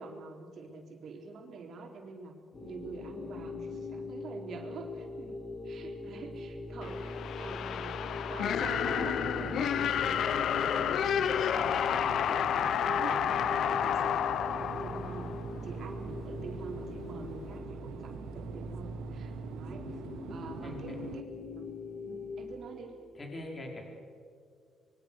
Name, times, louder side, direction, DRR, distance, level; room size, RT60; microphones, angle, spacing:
voice 1, 0.0-2.3 2.6-11.8 12.3-15.3 15.6-20.0 20.3-23.0, right 4 dB, 65° right, 2 dB, 4.2 m, -46 dB
sound 1, 2.5-22.5, left 2 dB, 45° left, 6.4 m, -42 dB
sound 2, 6.8-15.7, left 9 dB, 70° left, 0.7 m, -30 dB
sound 3, 8.6-21.2, right 10 dB, 85° right, 0.8 m, -45 dB
voice 2, 20.6-21.1 23.1-23.8, left 2 dB, 30° left, 1 dB, 5.1 m, -42 dB
25.5 x 23.0 x 6.7 m, 2.2 s
cardioid pair, 90°, 0 cm